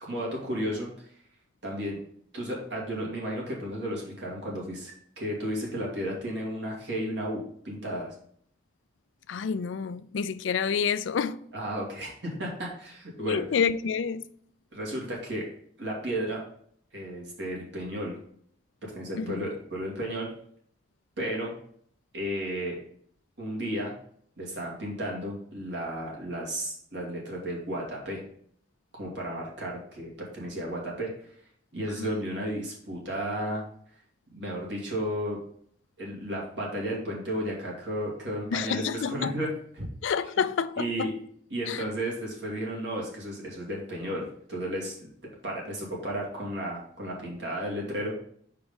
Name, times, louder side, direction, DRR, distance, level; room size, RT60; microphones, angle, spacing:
voice 1, 0.0-1.1 1.6-2.0 2.3-8.1 11.5-13.4 14.7-15.4 15.8-16.4 16.9-18.2 18.9-20.3 21.2-21.5 22.1-22.8 23.4-23.9 24.4-28.2 29.0-31.1 31.7-33.6 34.3-35.4 36.0-39.5 39.7-39.9 40.8-41.1 41.5-45.1 45.4-48.1, equal, 70° right, 2.4 m, -33 dB
voice 2, 9.3-11.4 13.2-14.3 19.2-19.5 32.0-32.1 38.5-39.3 40.0-41.1 41.7-41.9, left 6 dB, 85° left, 0.4 m, -28 dB
5.2 x 4.7 x 5.5 m
head